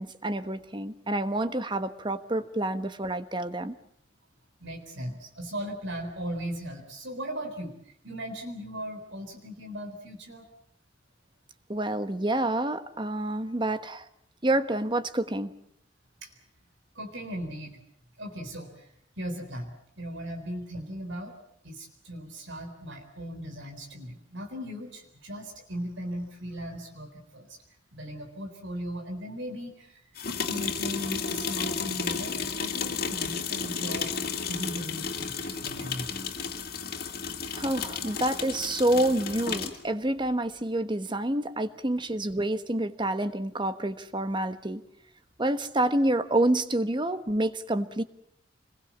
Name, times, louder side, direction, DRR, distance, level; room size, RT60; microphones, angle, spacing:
voice 1, 0.0-3.7 11.7-14.1 14.4-15.5 37.5-44.8 45.4-48.0, right 1 dB, 25° right, 11 dB, 1.2 m, -28 dB
voice 2, 4.6-7.8 8.0-10.4 16.2-16.3 16.9-17.8 18.2-18.9 19.2-21.3 21.6-27.5 27.9-30.0 30.5-34.1 34.5-36.2, equal, 75° right, 3 dB, 4.1 m, -38 dB
sound 1, 30.2-39.8, left 6 dB, 50° left, 2.6 m, -33 dB
26.5 x 21.5 x 7.4 m, 0.70 s
head